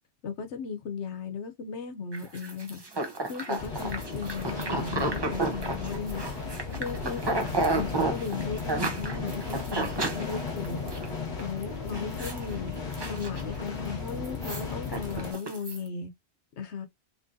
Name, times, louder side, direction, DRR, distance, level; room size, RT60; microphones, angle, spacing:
voice 1, 0.2-2.8 3.3-6.2 6.7-12.7 13.1-16.1 16.6-16.9, left 5 dB, 80° left, 1.1 m, -36 dB
sound 1, 2.1-11.0 11.4-11.6 11.9-12.5 12.8-13.7 14.1-15.8, right 2 dB, 25° right, 0.7 m, -32 dB
sound 2, 3.6-15.3, left 4 dB, 45° left, 1.3 m, -35 dB
3.7 x 3.1 x 2.6 m
omnidirectional pair, 1.1 m